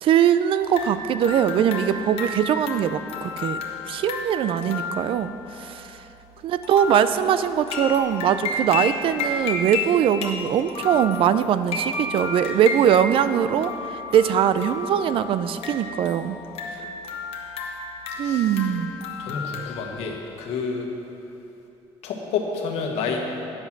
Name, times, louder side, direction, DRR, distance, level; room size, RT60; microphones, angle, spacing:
voice 1, 0.0-3.6 3.9-6.0 6.4-16.4 18.2-18.9, right 9 dB, 60° right, 12 dB, 0.4 m, -21 dB
sound 1, 0.6-20.0, left 4 dB, 70° left, 1.2 m, -33 dB
voice 2, 19.2-20.9 22.0-23.2, left 5 dB, 85° left, 1 dB, 1.4 m, -29 dB
9.4 x 7.9 x 5.9 m, 2.9 s
cardioid pair, 125°, 10 cm